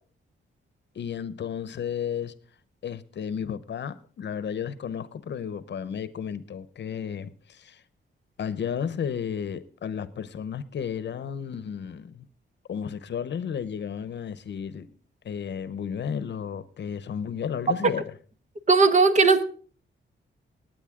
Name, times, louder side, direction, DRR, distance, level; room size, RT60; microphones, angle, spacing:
voice 1, 0.9-2.3 2.8-7.8 8.4-12.3 12.7-14.9 15.2-18.1, left 7 dB, 60° left, 0.8 m, -33 dB
voice 2, 18.7-19.4, right 4 dB, 35° right, 1.0 m, -17 dB
19.0 x 9.1 x 3.7 m
wide cardioid pair, 150°, 20 cm